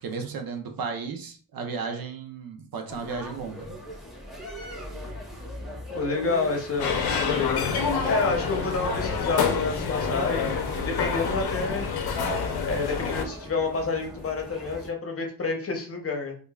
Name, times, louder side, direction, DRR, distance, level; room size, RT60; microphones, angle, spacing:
voice 1, 0.0-3.8, right 5 dB, 60° right, 5 dB, 0.8 m, -34 dB
sound 1, 2.9-14.9, equal, ahead, 1.1 m, -41 dB
voice 2, 5.9-7.7 8.0-11.9 12.7-16.4, left 4 dB, 35° left, 2 dB, 0.8 m, -28 dB
sound 2, 6.8-13.2, left 5 dB, 70° left, 0.7 m, -27 dB
5.1 x 2.6 x 2.3 m, 0.42 s
cardioid pair, 115°, 39 cm